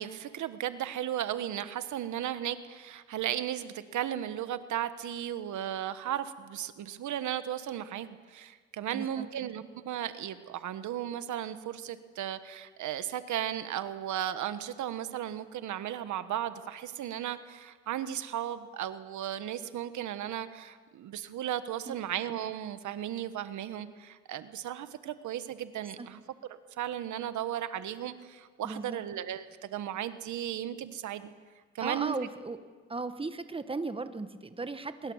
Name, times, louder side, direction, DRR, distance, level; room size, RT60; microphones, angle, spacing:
voice 1, 0.0-26.2 26.5-31.3 31.7-32.1, right 11 dB, 75° right, 11 dB, 1.3 m, -35 dB
voice 2, 8.9-9.3 21.9-22.0 26.0-26.1 28.6-29.0 31.8-32.6 32.9-35.1, right 3 dB, 20° right, 10 dB, 1.5 m, -36 dB
24.5 x 22.0 x 7.3 m, 1.5 s
cardioid pair, 90°, 30 cm